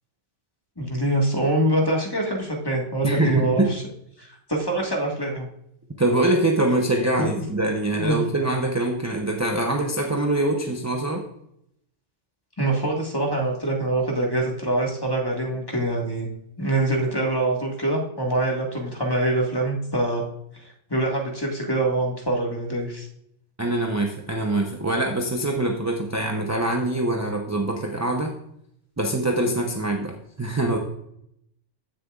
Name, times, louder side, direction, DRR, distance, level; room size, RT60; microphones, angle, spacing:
voice 1, 0.8-3.8 4.2-5.5 7.2-7.3 8.0-8.2 12.6-16.3 16.6-20.2 20.5-23.1, right 1 dB, 20° left, 0 dB, 1.5 m, -24 dB
voice 2, 3.0-3.7 6.0-11.2 23.6-28.4 29.0-30.8, right 2 dB, 15° right, 1 dB, 0.7 m, -24 dB
15.5 x 6.8 x 2.4 m, 0.75 s
omnidirectional pair, 1.2 m